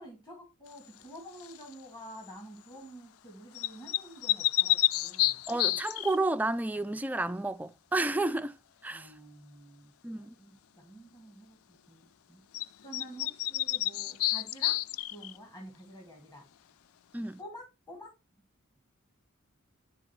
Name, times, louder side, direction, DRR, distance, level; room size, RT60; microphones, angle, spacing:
voice 1, 0.0-5.4 8.9-11.6 11.9-12.4 12.8-14.8 15.1-16.5 17.4-18.1, right 1 dB, 20° left, 1.9 m, -49 dB
sound 1, 1.4-1.7 3.5-6.2 12.5-12.6 12.9-15.4, left 14 dB, 85° left, 0.4 m, -29 dB
voice 2, 5.5-8.5 8.8-9.1 10.0-10.4 17.1-17.4, right 2 dB, 10° right, 0.3 m, -31 dB
10.0 x 3.9 x 4.3 m
head